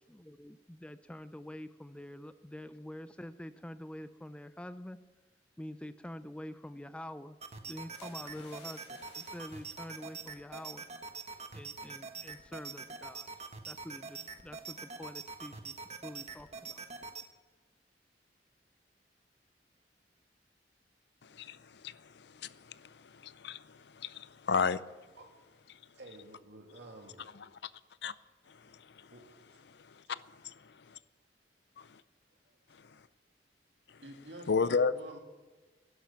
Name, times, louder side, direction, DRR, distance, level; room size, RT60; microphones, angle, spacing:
voice 1, 0.0-5.0 5.6-7.4 7.6-10.8 11.5-13.3 13.7-15.7 16.0-16.8, left 1 dB, 5° left, 0.4 m, -46 dB
sound 1, 7.4-17.3, right 5 dB, 40° right, 1.3 m, -45 dB
sound 2, 7.9-11.0 11.3-11.5, left 3 dB, 85° left, 4.3 m, -58 dB
voice 2, 21.2-24.8 28.0-28.1 28.5-29.1 29.7-31.0 31.8-32.0 32.8-33.0 34.5-34.9, left 5 dB, 70° left, 0.6 m, -34 dB
voice 3, 25.9-27.2 29.1-29.2 34.0-35.2, right 1 dB, 70° right, 2.7 m, -49 dB
12.0 x 11.5 x 8.5 m
head